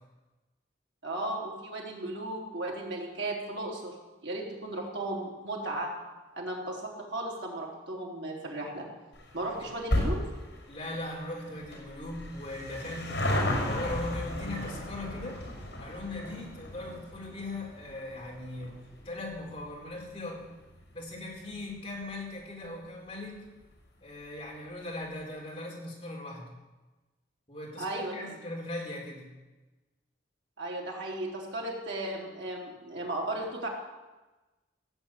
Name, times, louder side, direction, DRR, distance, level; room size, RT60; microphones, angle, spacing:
voice 1, 1.0-3.9 4.2-5.9 6.4-8.9 9.3-10.2 27.8-28.1 30.6-33.7, right 1 dB, 80° right, -2 dB, 3.8 m, -35 dB
sound 1, 9.1-21.9 22.2-22.3 23.2-23.3 23.5-23.6 23.8-23.9, left 1 dB, 65° left, 5.7 m, -35 dB
voice 2, 10.7-15.4 15.8-18.7 19.0-20.5 20.9-23.4 24.0-26.5 27.5-29.3, left 1 dB, 30° left, -3 dB, 4.5 m, -39 dB
16.5 x 7.8 x 9.2 m, 1.2 s
head